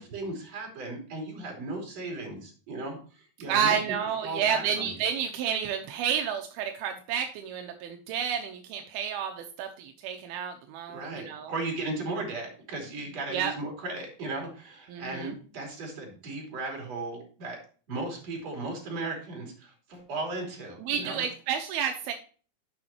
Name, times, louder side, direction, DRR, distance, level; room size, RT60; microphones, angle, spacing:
voice 1, 0.0-3.7 4.2-4.9 10.9-17.6 17.9-21.2, right 2 dB, 45° right, 0 dB, 4.0 m, -36 dB
voice 2, 3.5-11.5 13.3-13.5 14.9-15.4 20.8-22.1, right 8 dB, 85° right, 4 dB, 2.7 m, -30 dB
10.5 x 6.9 x 2.9 m, 0.39 s
omnidirectional pair, 4.3 m